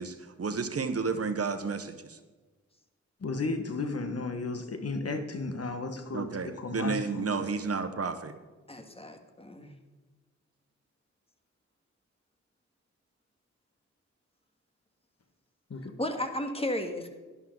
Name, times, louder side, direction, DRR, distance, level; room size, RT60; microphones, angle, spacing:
voice 1, 0.0-2.0 6.1-8.3, right 4 dB, 55° right, 9 dB, 1.1 m, -31 dB
voice 2, 3.2-7.5 15.7-15.9, left 3 dB, 55° left, 7 dB, 1.4 m, -34 dB
voice 3, 8.7-9.7 16.0-17.1, left 1 dB, 20° left, 6 dB, 1.8 m, -34 dB
11.5 x 11.5 x 3.9 m, 1.3 s
cardioid pair, 55°, 29 cm